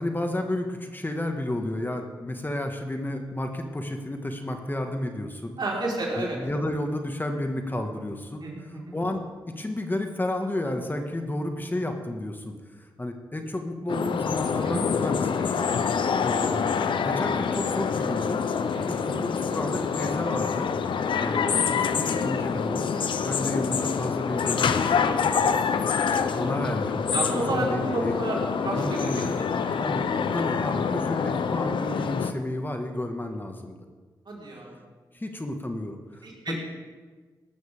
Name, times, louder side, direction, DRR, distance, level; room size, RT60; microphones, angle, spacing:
voice 1, 0.0-5.5 6.2-8.4 8.9-9.2 9.6-16.7 17.0-18.4 19.0-20.7 21.2-25.3 26.3-27.0 27.3-28.1 28.7-29.2 29.8-33.8 35.1-36.6, left 1 dB, 25° left, 4 dB, 1.7 m, -31 dB
voice 2, 5.6-6.4 8.4-8.9 14.6-14.9 18.7-19.3 27.1-29.8 34.3-34.8 36.2-36.6, right 2 dB, 65° right, -3 dB, 4.4 m, -31 dB
sound 1, 13.9-32.3, left 6 dB, 80° left, 0.7 m, -26 dB
18.0 x 12.5 x 3.6 m, 1.4 s
cardioid pair, 50°, 8 cm